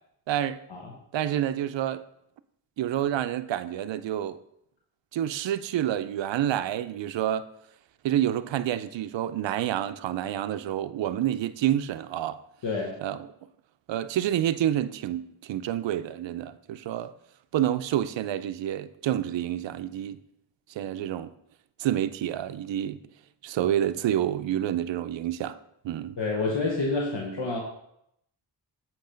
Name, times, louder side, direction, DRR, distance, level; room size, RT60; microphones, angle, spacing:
voice 1, 0.3-0.6 1.1-2.0 2.8-4.4 5.1-7.4 8.0-12.4 13.0-13.2 13.9-17.1 17.5-20.2 20.8-21.3 21.8-23.0 23.4-25.6 25.8-26.2, right 11 dB, 70° right, 0.5 m, -28 dB
voice 2, 12.6-13.0 26.2-27.6, left 3 dB, 65° left, 1.1 m, -28 dB
7.8 x 3.0 x 5.0 m
cardioid pair, 55°, 46 cm